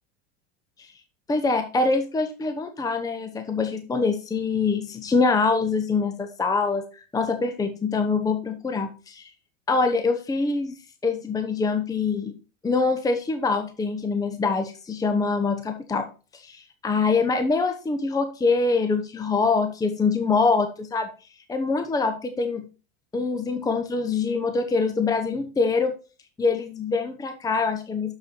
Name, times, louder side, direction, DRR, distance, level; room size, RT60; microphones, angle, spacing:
voice 1, 1.3-6.8 7.1-9.3 9.7-10.8 11.0-12.3 12.6-16.1 16.3-21.1 21.5-22.6 23.1-25.9 26.4-28.1, left 4 dB, 10° left, 7 dB, 0.8 m, -24 dB
6.8 x 6.7 x 4.4 m, 0.34 s
supercardioid pair, 120°, 32 cm